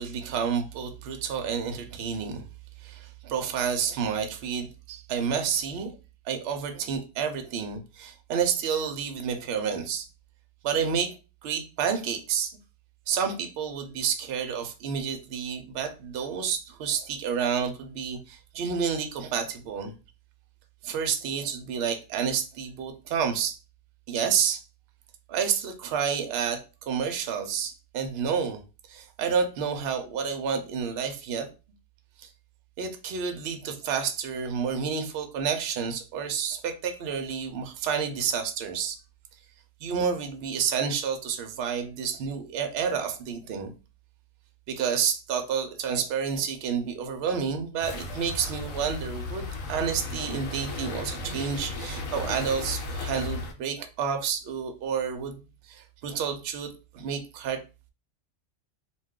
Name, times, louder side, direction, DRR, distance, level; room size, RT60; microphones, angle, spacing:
voice 1, 0.0-2.4 2.8-5.9 6.2-10.1 10.6-11.1 11.4-12.6 13.1-19.9 20.8-23.6 24.1-24.6 25.3-28.6 28.9-31.5 32.2-32.3 32.8-39.0 39.8-43.7 44.7-55.4 55.7-57.6, right 7 dB, 65° right, 0.6 m, -29 dB
sound 1, 47.8-53.5, left 2 dB, 75° left, 1.0 m, -35 dB
2.3 x 2.3 x 3.5 m
omnidirectional pair, 1.4 m